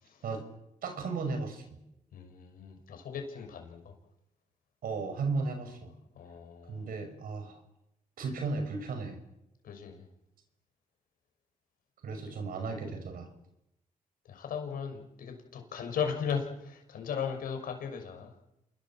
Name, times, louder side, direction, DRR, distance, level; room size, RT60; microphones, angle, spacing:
voice 1, 0.8-1.8 4.8-5.9 6.7-7.6 8.2-9.2 12.0-13.3, right 4 dB, 80° right, 7 dB, 6.0 m, -35 dB
voice 2, 2.1-4.0 6.1-6.8 9.6-10.1 14.2-18.4, left 7 dB, 85° left, 5 dB, 6.3 m, -37 dB
28.5 x 21.5 x 7.5 m, 0.87 s
cardioid pair, 70°, 15 cm